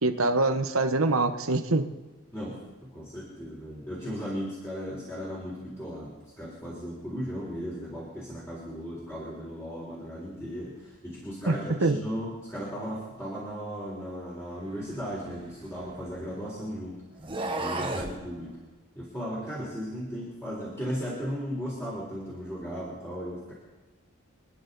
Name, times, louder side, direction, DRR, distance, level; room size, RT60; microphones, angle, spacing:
voice 1, 0.0-1.8 11.5-11.6 11.8-12.0, right 2 dB, 80° right, 8 dB, 1.2 m, -24 dB
voice 2, 2.3-17.0 17.6-18.6 19.0-23.5, equal, 15° left, -7 dB, 3.9 m, -36 dB
sound 1, 14.9-16.4 17.1-18.2, right 2 dB, 25° right, 1.3 m, -34 dB
27.5 x 10.5 x 4.1 m, 1.2 s
head